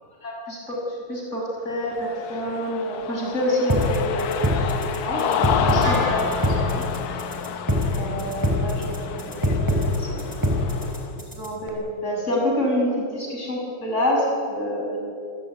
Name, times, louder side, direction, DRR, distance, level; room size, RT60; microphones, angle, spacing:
voice 1, 0.2-6.8 7.1-7.2 7.8-9.5 9.8-10.3 10.8-11.0 11.3-15.0, equal, 20° left, -2 dB, 7.3 m, -27 dB
Cheering, 1.8-11.1, left 8 dB, 70° left, 2.5 m, -29 dB
sound 1, 3.7-11.7, left 1 dB, 5° right, 4.0 m, -23 dB
Wind instrument woodwind instrument, 5.8-10.1, right 1 dB, 80° right, 5.4 m, -36 dB
28.0 x 15.5 x 9.6 m, 2.6 s
omnidirectional pair, 3.5 m